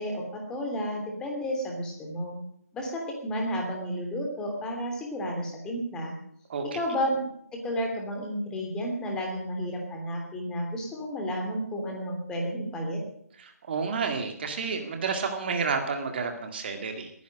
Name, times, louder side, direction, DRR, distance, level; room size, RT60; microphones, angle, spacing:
voice 1, 0.0-2.4 2.7-6.1 6.7-7.2 7.5-13.0, equal, 10° left, 0 dB, 3.0 m, -32 dB
voice 2, 6.5-6.8 13.4-17.1, right 5 dB, 40° right, 5 dB, 2.1 m, -30 dB
20.5 x 10.5 x 6.5 m, 0.68 s
figure-of-eight pair, 150°, 9 cm